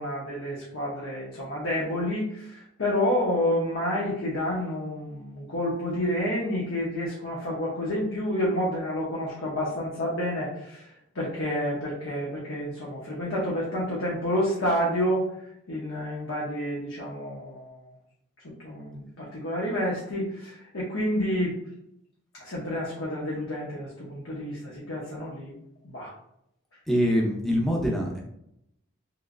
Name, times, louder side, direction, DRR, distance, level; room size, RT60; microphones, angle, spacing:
voice 1, 0.0-10.8 11.1-15.2 15.7-17.9 18.4-21.6 22.4-25.5 25.8-26.1, left 1 dB, 70° left, -5 dB, 0.8 m, -29 dB
voice 2, 26.9-28.2, equal, ahead, -1 dB, 0.5 m, -24 dB
3.1 x 3.0 x 2.5 m, 0.76 s
head